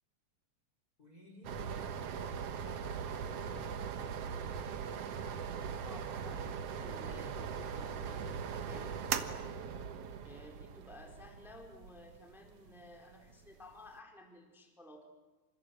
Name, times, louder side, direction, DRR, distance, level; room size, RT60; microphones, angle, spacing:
voice 1, 1.0-4.2, equal, 20° left, 2 dB, 4.0 m, -57 dB
sound 1, 1.4-13.9, right 7 dB, 85° right, 1.3 m, -40 dB
voice 2, 5.8-9.0 10.2-15.1, left 1 dB, ahead, 2 dB, 3.8 m, -54 dB
28.0 x 27.5 x 7.8 m, 1.2 s
omnidirectional pair, 4.9 m